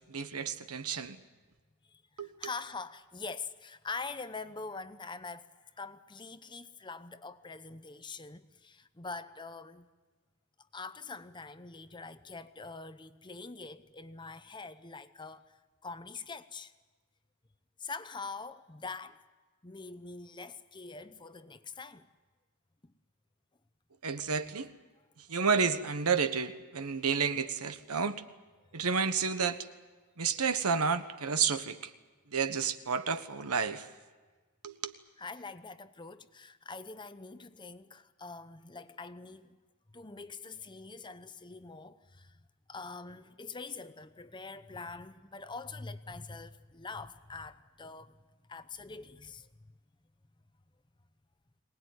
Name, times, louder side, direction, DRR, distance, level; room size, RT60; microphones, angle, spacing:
voice 1, 0.1-1.2 2.2-2.3 24.0-24.7 25.2-28.2 28.7-29.7 30.2-31.9 32.3-33.9 34.6-34.9, right 5 dB, 85° right, 1.3 m, -31 dB
voice 2, 1.8-9.9 10.7-16.7 17.8-19.2 19.6-22.1 22.8-22.9 35.2-39.6 39.9-42.4 42.7-48.2 48.5-49.5, left 4 dB, 20° left, 0.8 m, -44 dB
23.5 x 19.0 x 9.5 m
head